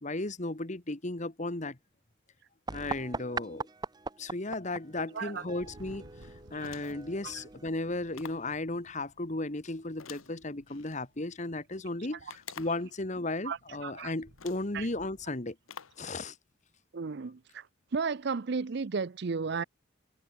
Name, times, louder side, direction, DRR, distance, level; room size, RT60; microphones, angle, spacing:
voice 1, 0.0-1.8 2.7-3.7 4.2-6.0 6.5-15.6 16.0-16.4, left 2 dB, 35° left, 1.4 m, -35 dB
sound 1, 2.7-8.2, right 3 dB, 20° right, 0.7 m, -41 dB
Thunder, 5.5-15.3, equal, 85° right, 6.7 m, -58 dB
sound 2, 6.6-7.1 8.1-8.5 10.0-11.0 12.3-12.9 13.8-13.9 14.4-14.7 15.7-16.1, left 7 dB, 85° left, 1.3 m, -48 dB
voice 2, 13.4-14.1 14.7-14.9 16.9-17.7 17.9-19.6, right 5 dB, 55° right, 0.5 m, -33 dB
head